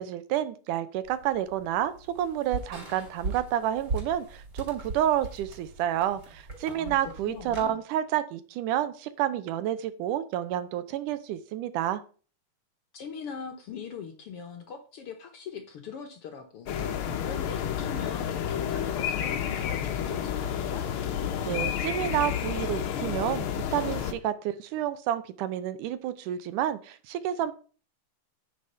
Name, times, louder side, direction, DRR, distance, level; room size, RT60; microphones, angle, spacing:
voice 1, 0.0-12.0 21.5-27.5, right 11 dB, 80° right, 13 dB, 2.3 m, -29 dB
sound 1, 1.0-7.7, right 3 dB, 30° right, 3.9 m, -39 dB
voice 2, 6.7-7.8 12.9-20.9, left 6 dB, 65° left, 6 dB, 1.5 m, -41 dB
sound 2, 16.7-24.1, left 9 dB, 90° left, 1.1 m, -30 dB
9.8 x 5.9 x 5.4 m, 0.38 s
omnidirectional pair, 3.7 m